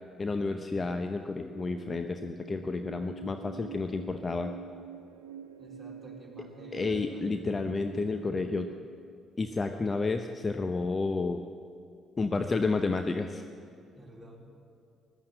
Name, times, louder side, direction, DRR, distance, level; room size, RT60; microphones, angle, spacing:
voice 1, 0.2-4.5 6.7-8.7 9.4-11.4 12.2-13.4, left 3 dB, 30° left, 7 dB, 0.7 m, -31 dB
sound 1, 1.5-8.8, right 7 dB, 85° right, 0.5 m, -46 dB
voice 2, 5.6-7.3 13.9-14.6, right 1 dB, 15° right, -3 dB, 4.0 m, -50 dB
14.5 x 12.0 x 7.9 m, 2.4 s
hypercardioid pair, 45°, 0 cm